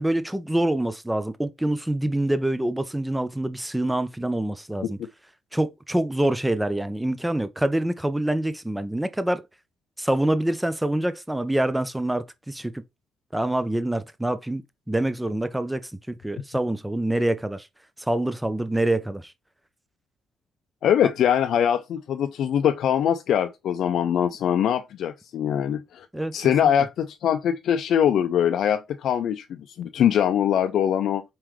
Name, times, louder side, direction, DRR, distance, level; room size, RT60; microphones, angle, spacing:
voice 1, 0.0-5.0 5.5-9.4 10.0-12.8 13.3-14.6 14.9-17.7 18.1-19.3 26.1-26.3, right 1 dB, 5° right, 0.6 m, -25 dB
voice 2, 20.8-26.1 26.3-31.2, left 9 dB, 70° left, 0.4 m, -22 dB
4.5 x 3.7 x 3.1 m
cardioid pair, 90°, 0 cm